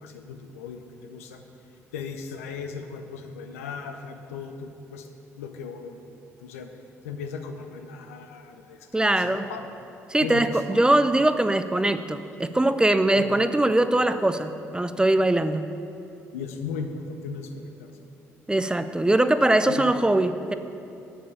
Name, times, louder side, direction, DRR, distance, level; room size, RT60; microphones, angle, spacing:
voice 1, 0.0-1.4 1.9-5.1 5.3-6.0 6.4-6.7 7.0-9.6 10.2-10.5 13.1-13.4 16.3-17.9 19.6-19.9, left 6 dB, 85° left, 6 dB, 0.5 m, -37 dB
voice 2, 8.9-9.5 10.1-15.6 18.5-20.5, right 1 dB, 10° right, 11 dB, 0.4 m, -22 dB
6.9 x 5.4 x 6.7 m, 2.8 s
hypercardioid pair, 50°, 7 cm